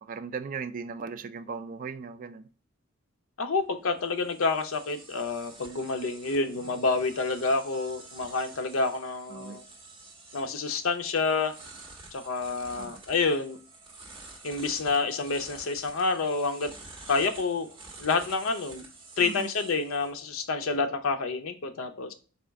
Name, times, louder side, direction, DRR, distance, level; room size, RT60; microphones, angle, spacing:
voice 1, 0.0-2.5 9.3-9.6 12.7-13.0 19.2-19.5, right 5 dB, 40° right, 11 dB, 0.3 m, -38 dB
voice 2, 3.4-9.6 10.3-11.5 12.1-13.6 14.4-16.7 17.1-17.7 18.0-18.8 19.2-22.1, left 4 dB, 80° left, 7 dB, 0.6 m, -28 dB
sound 1, 3.6-20.8, right 3 dB, 25° right, 1.1 m, -49 dB
4.2 x 2.3 x 3.4 m, 0.38 s
head